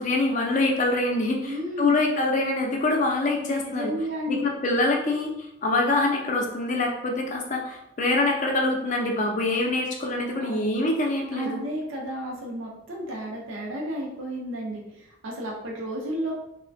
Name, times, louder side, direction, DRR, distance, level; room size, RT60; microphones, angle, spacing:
voice 1, 0.0-3.9 4.3-5.3 5.6-11.6, left 2 dB, 35° left, 1 dB, 0.4 m, -25 dB
voice 2, 1.4-1.9 3.4-4.5 10.3-10.6 11.3-16.3, equal, 70° right, -2 dB, 0.5 m, -32 dB
3.2 x 2.1 x 2.5 m, 0.85 s
head